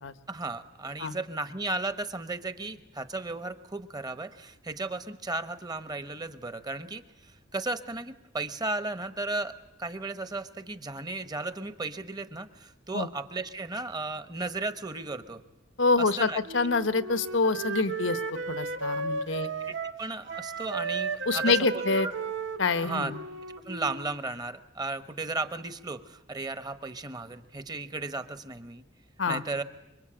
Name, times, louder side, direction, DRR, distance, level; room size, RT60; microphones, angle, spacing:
voice 1, 0.3-9.5 9.8-15.4 16.0-16.4 19.6-22.1 22.8-23.1 23.7-28.8 29.3-29.6, right 2 dB, 20° right, 11 dB, 1.1 m, -35 dB
voice 2, 15.8-18.2 18.5-19.5 21.3-22.1 22.6-23.2 29.2-29.4, left 4 dB, 80° left, 13 dB, 1.1 m, -26 dB
Wind instrument woodwind instrument, 16.5-20.0 20.3-24.1, right 4 dB, 80° right, 1.4 m, -34 dB
26.0 x 23.5 x 8.8 m, 0.89 s
head